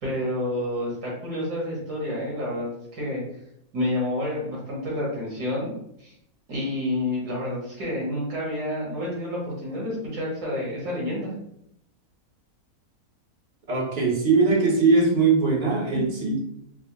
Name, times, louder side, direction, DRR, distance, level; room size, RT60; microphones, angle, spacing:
voice 1, 0.0-3.2 3.7-5.7 6.0-6.1 6.5-11.3, left 1 dB, 80° right, -5 dB, 2.1 m, -29 dB
voice 2, 13.7-16.4, right 4 dB, 40° right, -1 dB, 0.6 m, -21 dB
4.6 x 2.2 x 2.7 m, 0.76 s
omnidirectional pair, 1.7 m